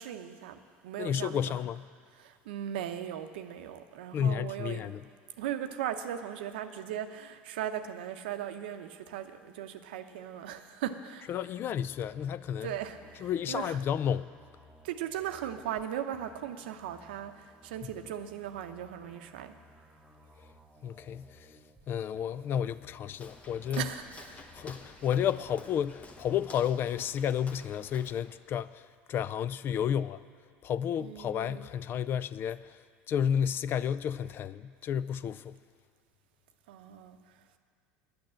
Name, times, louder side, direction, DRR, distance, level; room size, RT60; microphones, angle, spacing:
voice 1, 0.0-1.5 2.2-4.9 5.4-11.2 12.6-13.8 14.8-19.6 23.8-24.4 31.0-31.7 36.7-37.4, right 10 dB, 85° right, 8 dB, 0.7 m, -38 dB
voice 2, 1.0-1.9 4.1-5.0 11.3-12.7 13.2-14.3 20.8-21.6 21.9-23.9 24.5-30.2 30.6-32.8 33.1-35.6, left 9 dB, 40° left, 16 dB, 0.4 m, -31 dB
sound 1, 11.5-15.9 16.1-21.8 22.1-26.8, equal, 10° right, 1.1 m, -59 dB
Walk footsteps, 23.1-28.4, left 3 dB, 25° left, 1.0 m, -51 dB
10.5 x 8.8 x 7.6 m, 2.2 s
supercardioid pair, 110°, 5 cm